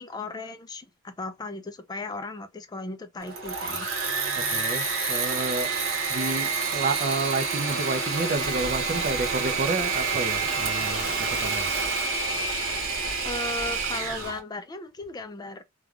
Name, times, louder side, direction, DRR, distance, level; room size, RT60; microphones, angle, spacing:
voice 1, 0.0-3.9 13.2-15.6, left 3 dB, 20° left, 0.3 m, -36 dB
Engine / Mechanisms, 3.2-14.4, right 4 dB, 65° right, 1.1 m, -28 dB
voice 2, 4.4-5.7 6.1-11.7, right 3 dB, 40° right, 0.5 m, -30 dB
Waves surf, 8.3-14.3, right 1 dB, 20° right, 1.2 m, -41 dB
3.2 x 2.3 x 2.3 m
head